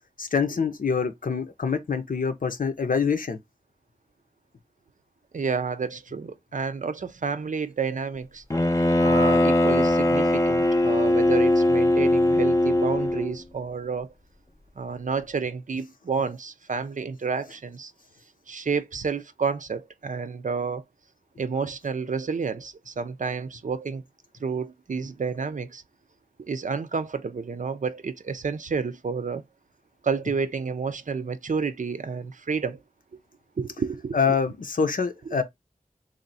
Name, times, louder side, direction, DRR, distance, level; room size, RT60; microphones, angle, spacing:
voice 1, 0.2-3.4 34.1-35.4, left 5 dB, 85° left, 0.6 m, -25 dB
voice 2, 5.3-8.4 9.0-14.1 14.8-17.9 18.5-20.8 21.4-24.0 24.4-25.8 26.5-29.4 30.0-32.8 33.6-34.4 35.3-35.4, right 5 dB, 65° right, 0.5 m, -30 dB
Bowed string instrument, 8.5-13.4, left 1 dB, 20° left, 0.5 m, -20 dB
3.1 x 2.6 x 4.0 m
wide cardioid pair, 65°, 14 cm